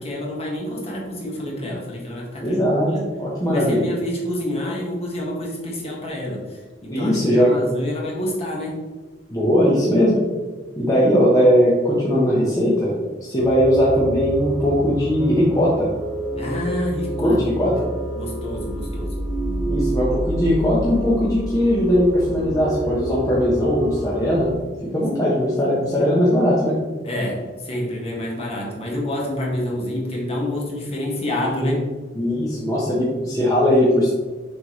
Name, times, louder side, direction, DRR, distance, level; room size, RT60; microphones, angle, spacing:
voice 1, 0.0-2.6 2.9-3.1 3.4-8.8 16.4-17.7 18.1-19.2 27.0-31.9, left 1 dB, 35° left, -3 dB, 1.7 m, -28 dB
voice 2, 2.4-2.9 3.2-3.8 6.9-7.6 9.3-10.2 10.8-12.9 13.2-15.9 17.2-17.7 19.6-24.5 24.9-26.8 32.2-34.1, equal, 20° left, -7 dB, 1.2 m, -19 dB
sound 1, 13.4-24.4, right 1 dB, 15° right, 0.9 m, -28 dB
6.9 x 5.4 x 3.2 m, 1.3 s
head